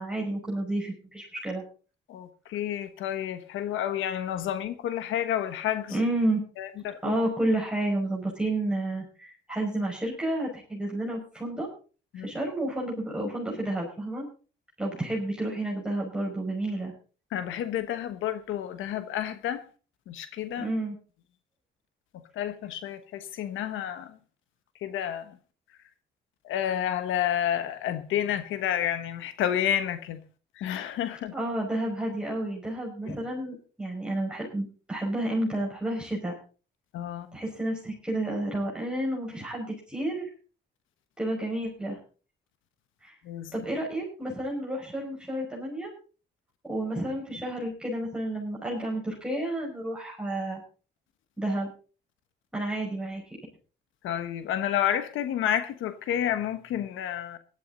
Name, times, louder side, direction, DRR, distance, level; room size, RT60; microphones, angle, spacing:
voice 1, 0.0-1.6 5.9-6.4 7.0-11.7 12.2-14.3 14.8-16.9 20.6-21.0 31.3-36.3 37.3-40.3 41.2-42.0 43.0-43.1 43.5-45.9 46.6-50.6 51.4-51.7 52.5-53.4, right 1 dB, 5° right, 5.7 m, -30 dB
voice 2, 2.1-6.0 6.6-7.1 12.1-12.3 17.3-19.6 20.1-20.7 22.3-24.2 24.8-25.4 26.4-30.2 30.6-31.3 33.0-33.2 36.9-37.3 43.2-43.5 54.0-57.4, left 10 dB, 85° left, 1.2 m, -30 dB
16.5 x 12.0 x 4.0 m
cardioid pair, 90°, 20 cm